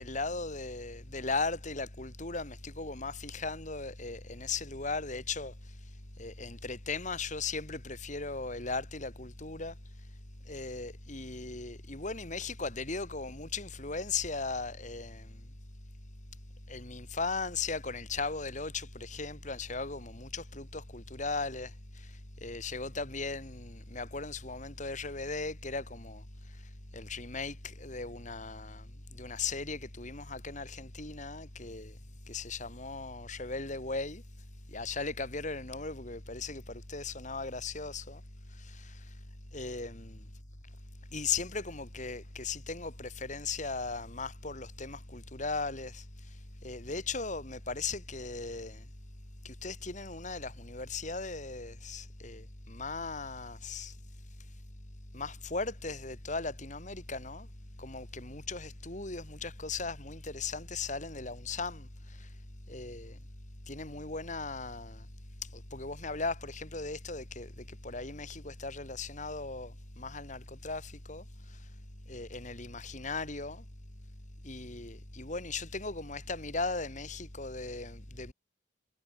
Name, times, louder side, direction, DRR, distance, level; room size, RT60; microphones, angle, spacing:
voice 1, 0.0-5.5 6.2-9.7 10.5-15.2 16.7-21.7 22.4-26.2 26.9-28.8 29.2-31.9 32.3-34.2 34.7-38.2 39.5-40.2 41.1-46.0 46.6-48.8 49.4-53.9 55.1-57.5 57.8-61.9 62.7-63.1 63.7-65.0 65.7-67.5 67.8-69.7 70.0-71.2 72.1-73.6 74.4-78.3, left 3 dB, 40° left, 3.3 m, -37 dB
head